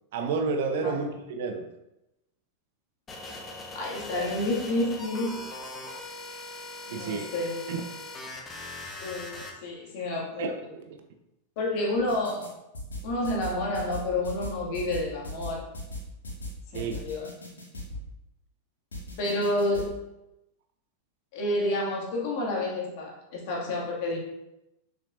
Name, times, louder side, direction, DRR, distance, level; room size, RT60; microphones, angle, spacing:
voice 1, 0.1-1.6 6.9-7.3 7.7-7.8 10.4-10.5 16.7-17.0, right 4 dB, 55° right, 5 dB, 0.8 m, -30 dB
sound 1, 3.1-9.5, left 2 dB, 20° left, 1.2 m, -40 dB
voice 2, 3.7-5.5 6.9-7.6 9.0-10.7 11.6-12.5 13.0-15.7 16.7-17.3 19.2-20.0 21.3-24.2, left 1 dB, 45° left, -3 dB, 2.2 m, -29 dB
sound 2, 12.0-12.5 12.7-18.0 18.9-19.9, left 1 dB, 70° left, 2.0 m, -38 dB
6.6 x 6.0 x 2.6 m, 0.90 s
figure-of-eight pair, 90°, 0 cm